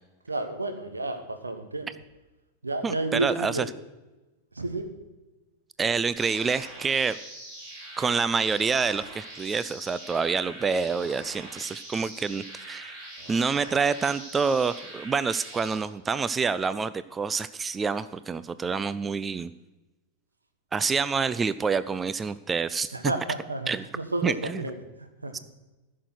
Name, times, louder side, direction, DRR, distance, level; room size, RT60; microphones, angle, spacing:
voice 1, 0.3-1.9 2.6-3.7 4.5-4.9 22.9-23.7 23.9-25.3, right 2 dB, 80° right, 6 dB, 1.3 m, -31 dB
voice 2, 2.8-3.7 5.8-7.2 8.0-13.0 13.3-19.5 20.7-23.1 23.7-23.8 24.2-24.6 25.3-25.4, right 5 dB, 15° right, 15 dB, 0.3 m, -27 dB
sound 1, 6.2-15.8, right 1 dB, 35° right, 4.4 m, -43 dB
15.0 x 6.5 x 6.2 m, 1.1 s
figure-of-eight pair, 90°, 0 cm